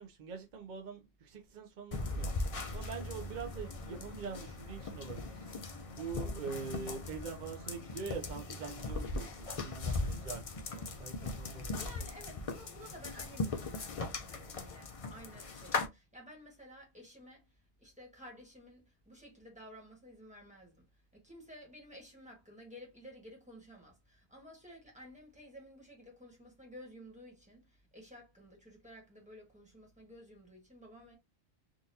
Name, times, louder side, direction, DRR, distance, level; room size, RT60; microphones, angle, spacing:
voice 1, 0.0-5.5 5.9-11.8, right 5 dB, 50° right, 0.6 m, -44 dB
sound 1, 1.9-15.9, left 3 dB, 45° left, 0.5 m, -39 dB
voice 2, 11.5-20.9 21.1-31.2, equal, 5° right, 1.4 m, -54 dB
3.8 x 2.5 x 2.6 m
omnidirectional pair, 1.1 m